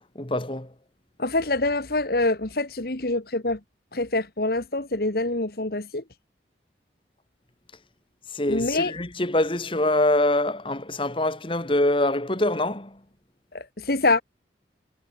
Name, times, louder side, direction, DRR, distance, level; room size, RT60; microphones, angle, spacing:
voice 1, 0.2-0.7 8.3-13.0, left 1 dB, 30° left, 2.1 m, -24 dB
voice 2, 1.2-3.6 3.9-6.0 8.5-8.9 13.5-14.2, left 2 dB, 55° left, 1.8 m, -25 dB
head